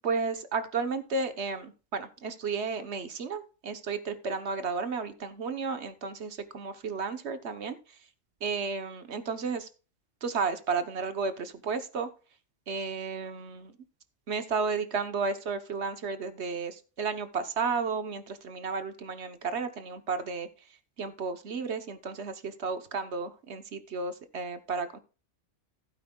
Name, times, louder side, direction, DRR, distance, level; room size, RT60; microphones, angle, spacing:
voice 1, 0.0-7.8 8.4-9.7 10.2-12.1 12.7-13.7 14.3-20.5 21.0-25.0, right 4 dB, 60° right, 10 dB, 1.3 m, -33 dB
16.0 x 8.8 x 2.3 m, 0.34 s
omnidirectional pair, 1.3 m